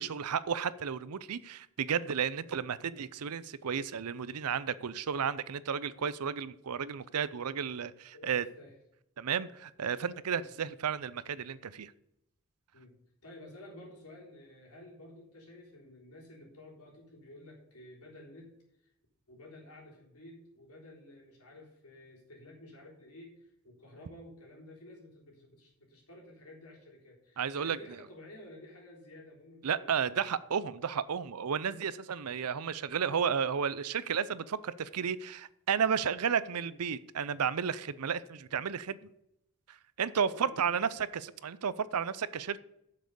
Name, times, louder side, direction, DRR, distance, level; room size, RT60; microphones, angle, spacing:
voice 1, 0.0-8.4 9.2-11.9 27.4-27.8 29.6-39.0 39.7-42.6, right 7 dB, 80° right, 17 dB, 0.6 m, -33 dB
voice 2, 8.1-8.8 10.4-10.5 12.7-18.9 19.3-30.3 36.6-36.7 40.3-40.7, left 1 dB, 80° left, -1 dB, 3.7 m, -52 dB
7.6 x 7.5 x 6.9 m, 0.80 s
head